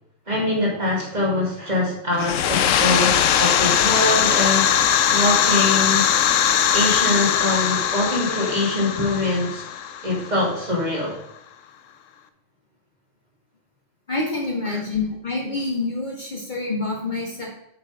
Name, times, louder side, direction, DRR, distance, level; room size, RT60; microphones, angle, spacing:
voice 1, 0.3-4.8 5.1-6.1 6.7-9.6 10.0-11.2 14.6-14.8, left 2 dB, 35° right, -3 dB, 2.7 m, -23 dB
sound 1, 2.1-10.7, left 9 dB, 80° left, 1.0 m, -20 dB
voice 2, 14.1-17.5, left 3 dB, 35° left, -2 dB, 1.9 m, -27 dB
8.7 x 6.4 x 4.8 m, 0.78 s
omnidirectional pair, 1.3 m